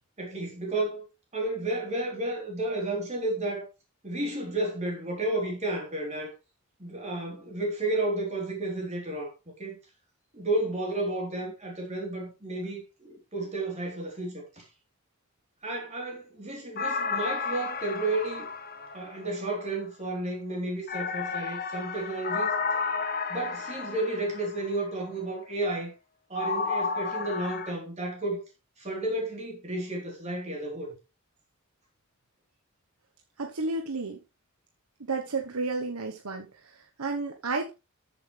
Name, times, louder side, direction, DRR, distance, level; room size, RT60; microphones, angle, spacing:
voice 1, 0.2-1.1 1.3-3.7 4.0-6.3 6.8-9.3 9.6-9.8 10.3-14.6 15.6-18.5 18.9-22.5 23.3-25.9 26.3-28.4 28.8-30.9, right 2 dB, 30° right, 3.7 m, -32 dB
sound 1, 16.8-19.6 20.9-24.7 26.4-27.7, left 5 dB, 45° left, 1.1 m, -32 dB
voice 2, 33.4-34.2 35.1-37.7, right 3 dB, 90° right, 1.1 m, -32 dB
13.5 x 7.3 x 3.3 m
head